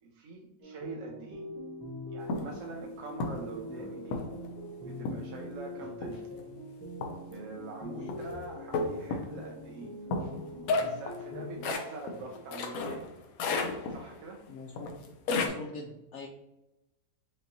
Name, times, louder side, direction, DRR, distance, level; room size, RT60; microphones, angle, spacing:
voice 1, 0.0-1.4 2.1-4.2 4.8-6.3 7.3-9.9 10.7-13.1 13.9-14.4, right 3 dB, 70° right, 1 dB, 0.8 m, -44 dB
sound 1, 0.6-11.7, left 1 dB, 25° right, 0.5 m, -43 dB
sound 2, 2.3-2.5 3.2-3.5 4.1-4.5 5.1-5.4 6.0-6.4 7.0-7.3 8.1-8.3 8.7-9.4 10.1-13.1 13.4-14.2 14.8-15.5, left 3 dB, 65° left, 1.0 m, -32 dB
voice 2, 14.5-14.9 15.3-16.3, left 3 dB, 80° left, 0 dB, 0.6 m, -43 dB
5.1 x 2.9 x 2.7 m, 0.96 s
omnidirectional pair, 1.8 m